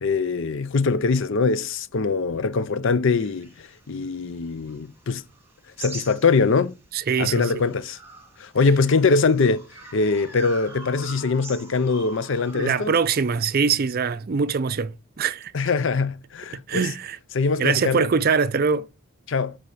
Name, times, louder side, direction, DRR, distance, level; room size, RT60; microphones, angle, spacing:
voice 1, 0.0-5.2 5.8-6.8 7.2-8.0 8.4-9.6 9.9-12.9 15.5-16.8 17.3-18.1 19.3-19.6, left 4 dB, 55° left, 0.5 m, -22 dB
sound 1, 3.2-6.7 7.2-13.9, right 3 dB, 10° right, 1.9 m, -43 dB
voice 2, 6.9-7.6 12.5-15.5 16.5-17.2 17.6-18.9, right 5 dB, 40° right, 0.4 m, -23 dB
8.1 x 4.1 x 5.0 m
head